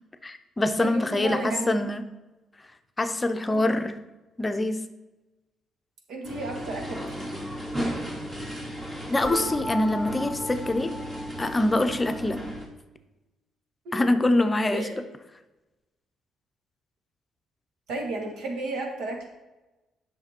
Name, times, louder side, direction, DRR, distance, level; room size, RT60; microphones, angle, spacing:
voice 1, 0.2-2.0 3.0-4.0 4.4-4.8 9.1-10.9 11.4-12.4 13.9-14.9, left 1 dB, 20° left, 8 dB, 0.7 m, -24 dB
voice 2, 0.8-1.9 3.5-3.7 6.1-7.4 12.1-12.2 13.9-14.1 14.7-14.9 17.9-19.3, right 2 dB, 80° right, 2 dB, 1.9 m, -33 dB
sound 1, 6.2-12.7, equal, 40° right, 2.7 m, -35 dB
sound 2, 9.2-12.1, left 1 dB, 20° right, 2.2 m, -37 dB
8.6 x 6.1 x 4.4 m, 1.1 s
cardioid pair, 90°, 0 cm